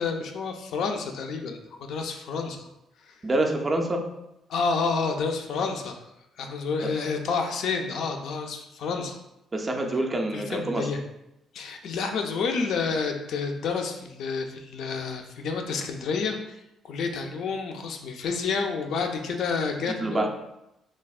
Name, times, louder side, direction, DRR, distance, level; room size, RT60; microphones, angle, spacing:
voice 1, 0.0-2.7 3.0-3.2 4.5-6.0 6.4-9.2 10.3-11.0 11.5-20.3, left 5 dB, 65° left, 4 dB, 0.3 m, -29 dB
voice 2, 3.2-4.0 9.5-10.9 20.0-20.3, right 1 dB, 20° right, 2 dB, 0.3 m, -26 dB
3.2 x 2.0 x 2.3 m, 0.86 s
cardioid pair, 130°, 0 cm